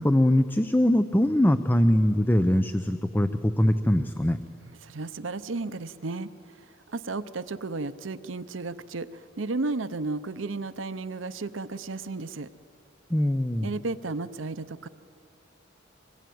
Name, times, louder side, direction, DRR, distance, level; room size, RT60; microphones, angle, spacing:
voice 1, 0.0-4.4 13.1-13.7, left 1 dB, 10° left, 10 dB, 0.6 m, -22 dB
voice 2, 4.7-12.5 13.6-14.9, right 3 dB, 75° right, 14 dB, 0.8 m, -34 dB
25.0 x 20.5 x 9.4 m, 2.4 s
head